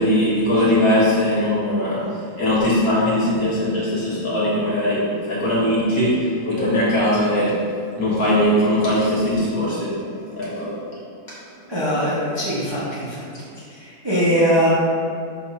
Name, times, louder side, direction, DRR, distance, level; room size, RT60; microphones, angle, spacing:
voice 1, 0.0-7.6 7.9-10.0 10.3-10.8 11.3-11.4, left 1 dB, 45° left, -8 dB, 2.0 m, -20 dB
voice 2, 11.7-13.2 13.7-14.7, equal, 15° right, -10 dB, 1.3 m, -21 dB
11.0 x 4.0 x 2.8 m, 2.4 s
omnidirectional pair, 2.2 m